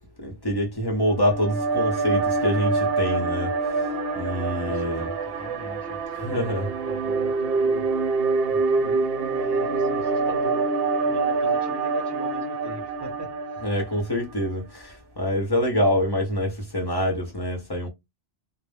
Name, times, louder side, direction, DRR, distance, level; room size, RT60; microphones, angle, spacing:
voice 1, 0.2-3.5 4.1-5.1 6.1-6.7 13.6-17.9, equal, 25° left, 0.5 m, -25 dB
sound 1, 0.9-14.3, right 4 dB, 65° right, 0.7 m, -26 dB
voice 2, 4.7-7.9 8.5-10.7 11.1-13.6, equal, 25° right, 0.7 m, -41 dB
2.1 x 2.0 x 3.2 m
omnidirectional pair, 1.2 m